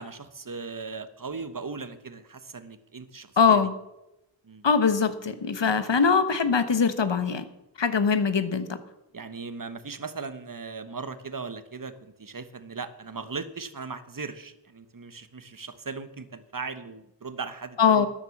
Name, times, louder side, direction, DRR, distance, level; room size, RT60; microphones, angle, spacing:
voice 1, 0.0-3.6 4.4-4.7 9.1-18.1, right 4 dB, 45° right, 11 dB, 1.2 m, -38 dB
voice 2, 3.4-3.7 4.6-7.5 7.8-8.8 17.8-18.1, left 6 dB, 70° left, 12 dB, 1.2 m, -22 dB
12.5 x 10.5 x 7.2 m, 0.91 s
wide cardioid pair, 65°, 45 cm